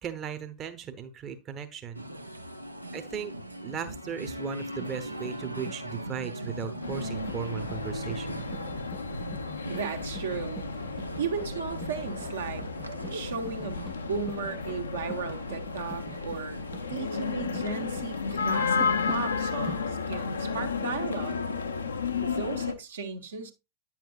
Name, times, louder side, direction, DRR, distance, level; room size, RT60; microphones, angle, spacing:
voice 1, 0.0-2.1 2.9-3.3 3.6-8.5, right 7 dB, 30° right, 0.8 m, -37 dB
sound 1, 1.9-21.9, right 1 dB, 85° right, 0.6 m, -41 dB
sound 2, 4.7-19.8, right 1 dB, ahead, 0.4 m, -47 dB
sound 3, 6.8-22.7, left 5 dB, 75° left, 0.6 m, -33 dB
voice 2, 9.7-10.6 11.2-12.7 13.1-16.6 16.9-21.4 22.2-23.5, right 5 dB, 65° right, 1.0 m, -35 dB
9.1 x 7.1 x 2.4 m
figure-of-eight pair, 90°, 0 cm